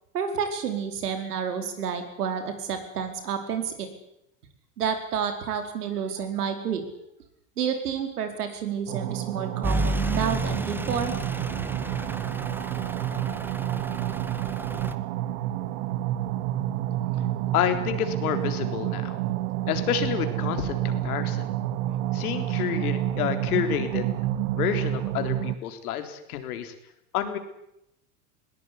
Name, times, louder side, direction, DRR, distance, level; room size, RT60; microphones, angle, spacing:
voice 1, 0.1-3.9 4.8-6.8 7.6-11.2, right 7 dB, 85° right, 7 dB, 4.8 m, -29 dB
sound 1, 8.9-25.6, right 13 dB, 60° right, 1.7 m, -29 dB
Truck / Idling, 9.6-14.9, right 1 dB, 5° right, 1.6 m, -32 dB
voice 2, 17.5-19.2 19.7-21.5 22.1-24.1 24.5-26.7 27.1-27.4, left 9 dB, 75° left, 7 dB, 3.8 m, -29 dB
20.5 x 18.5 x 9.8 m, 0.81 s
hypercardioid pair, 100°, 45 cm